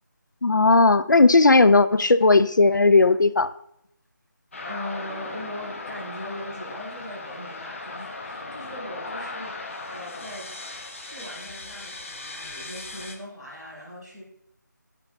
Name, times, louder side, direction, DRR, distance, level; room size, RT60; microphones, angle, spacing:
voice 1, 0.4-3.5, left 3 dB, 75° left, 14 dB, 0.5 m, -16 dB
sound 1, 4.5-13.2, left 3 dB, 40° left, 1.0 m, -37 dB
voice 2, 4.6-10.6 11.0-14.2, equal, ahead, -16 dB, 3.0 m, -39 dB
9.7 x 8.3 x 2.6 m, 0.73 s
figure-of-eight pair, 165°, 10 cm